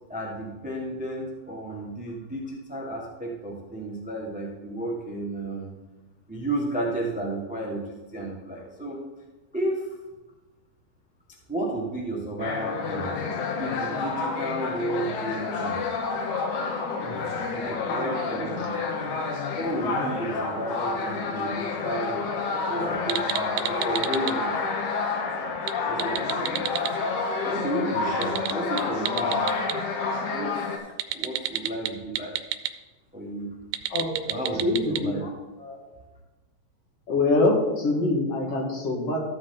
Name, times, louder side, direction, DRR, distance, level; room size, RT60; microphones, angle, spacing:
voice 1, 0.1-5.7 6.3-9.0 9.5-9.9 11.5-13.1 13.6-15.8 17.0-19.2 19.5-22.3 22.6-24.5 25.9-26.6 27.4-29.4 30.3-30.9 31.1-32.4 33.1-33.6 34.3-35.3, right 1 dB, 5° right, -2 dB, 0.7 m, -32 dB
sound 1, 12.4-30.8, left 4 dB, 85° left, 2.6 m, -29 dB
sound 2, 23.0-24.3 25.6-26.9 28.1-29.8 31.0-32.7 33.6-35.0, right 12 dB, 80° right, 1.9 m, -30 dB
voice 2, 33.9-35.2 35.6-35.8 37.1-39.2, left 2 dB, 55° left, -1 dB, 2.7 m, -25 dB
14.0 x 6.6 x 3.9 m, 1.1 s
omnidirectional pair, 3.3 m